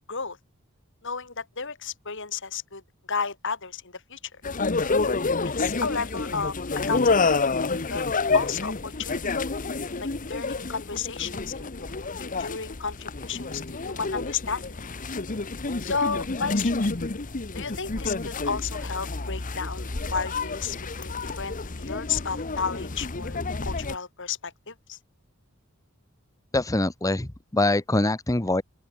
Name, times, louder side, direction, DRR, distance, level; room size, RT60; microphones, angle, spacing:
voice 1, 1.0-2.8 3.1-4.2 5.6-6.6 6.9-7.4 7.9-8.0 8.3-9.2 10.0-11.9 12.2-14.7 15.8-16.8 17.5-25.0, left 5 dB, 60° left, 5.0 m, -32 dB
sound 1, 4.4-24.0, left 3 dB, 40° left, 1.1 m, -29 dB
voice 2, 26.5-28.6, left 2 dB, 15° left, 1.0 m, -24 dB
open air
head